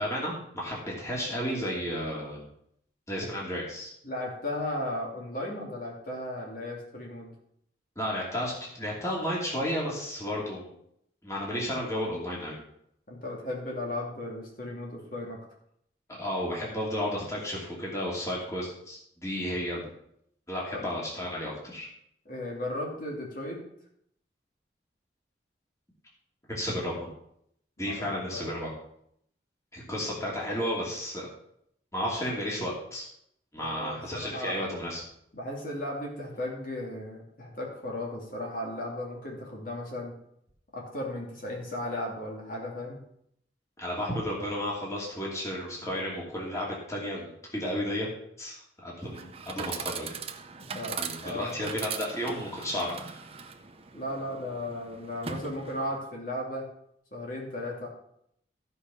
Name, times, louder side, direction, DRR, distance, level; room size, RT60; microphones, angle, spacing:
voice 1, 0.0-2.4 3.1-3.9 8.0-10.7 11.2-12.5 16.1-19.9 20.5-21.9 26.5-27.1 27.8-28.7 29.7-31.3 31.9-33.1 33.5-35.0 43.8-48.1 48.4-50.1 51.0-53.2, equal, 15° left, -4 dB, 2.6 m, -33 dB
voice 2, 4.0-7.3 13.1-15.4 20.7-20.9 22.2-23.6 27.8-28.5 33.6-34.6 35.3-40.1 40.7-43.0 50.6-51.7 53.9-56.7 57.1-57.9, left 1 dB, 50° left, -2 dB, 2.7 m, -36 dB
Chatter / Coin (dropping), 49.0-56.0, right 6 dB, 35° right, 0.7 m, -40 dB
14.0 x 5.5 x 5.6 m, 0.72 s
head